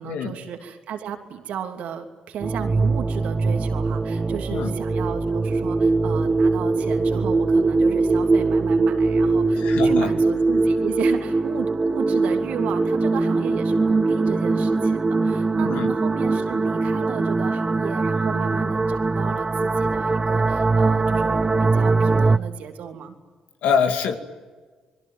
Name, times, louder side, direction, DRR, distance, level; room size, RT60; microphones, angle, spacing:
voice 1, 0.0-23.1, right 8 dB, 70° right, 5 dB, 2.9 m, -34 dB
sound 1, 2.4-22.4, right 3 dB, 30° right, 1.1 m, -21 dB
voice 2, 9.5-10.1 15.6-15.9 23.6-24.2, left 6 dB, 70° left, 6 dB, 2.6 m, -24 dB
28.5 x 22.0 x 9.4 m, 1.4 s
hypercardioid pair, 45°, 3 cm